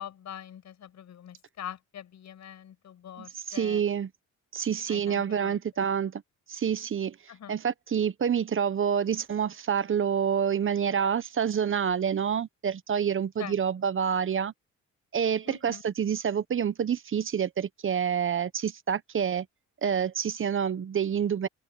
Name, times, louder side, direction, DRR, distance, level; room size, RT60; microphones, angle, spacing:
voice 1, 0.0-3.8 4.9-5.9 7.3-7.5 13.4-13.5 15.4-15.8, left 10 dB, 65° left, 6.2 m, -43 dB
voice 2, 3.5-4.1 4.5-6.2 6.5-7.1 7.5-14.5 15.1-19.5 19.8-21.5, right 7 dB, 45° right, 1.1 m, -27 dB
open air
cardioid pair, 90°, 30 cm